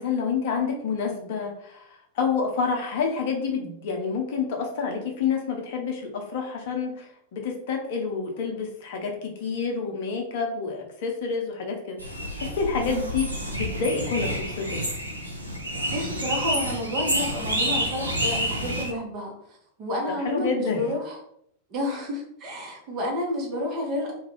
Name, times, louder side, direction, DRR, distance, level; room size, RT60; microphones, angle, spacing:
voice 1, 0.0-1.8 2.2-12.0 12.3-14.8 20.2-20.9, left 5 dB, 50° left, 2 dB, 0.6 m, -28 dB
sound 1, 12.0-18.9, equal, 85° right, 0.5 m, -29 dB
voice 2, 15.9-19.3 19.8-21.2 21.7-24.1, left 1 dB, 40° right, -1 dB, 0.9 m, -30 dB
2.4 x 2.2 x 3.1 m, 0.70 s
figure-of-eight pair, 90°, 0 cm